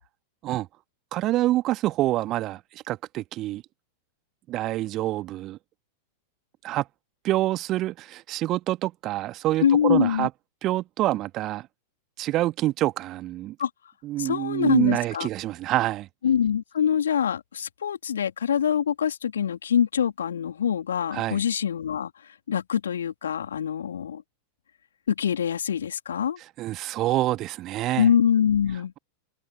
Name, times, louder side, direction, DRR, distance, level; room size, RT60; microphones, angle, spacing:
voice 1, 1.1-3.6 4.5-5.6 6.6-6.9 7.2-10.3 10.6-11.7 12.2-13.6 14.0-16.1 21.1-21.4 26.6-28.1, right 15 dB, 35° right, 2.0 m, -26 dB
voice 2, 9.6-10.3 13.6-13.7 14.2-15.3 16.2-22.1 22.5-24.2 25.1-26.4 28.0-28.9, left 8 dB, 65° left, 3.1 m, -24 dB
figure-of-eight pair, 90°, 0 cm